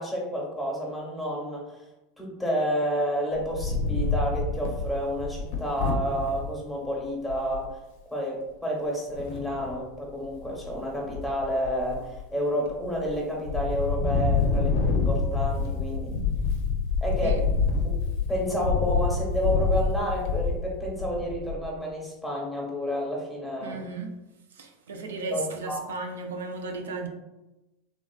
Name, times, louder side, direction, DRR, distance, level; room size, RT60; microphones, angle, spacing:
voice 1, 0.0-1.6 2.2-7.8 8.1-16.1 17.0-17.5 17.8-17.9 18.3-23.8 25.3-25.8, equal, ahead, 1.1 m, -30 dB
Wind, 3.3-6.5 7.0-7.1 7.3-7.7 9.1-9.7 10.2-10.7 11.1-12.2 12.7-13.1 13.4-21.7, left 4 dB, 70° left, 0.5 m, -27 dB
voice 2, 23.6-24.2 24.5-27.1, right 3 dB, 90° right, 0.3 m, -35 dB
3.2 x 2.4 x 2.3 m
hypercardioid pair, 100°, 0 cm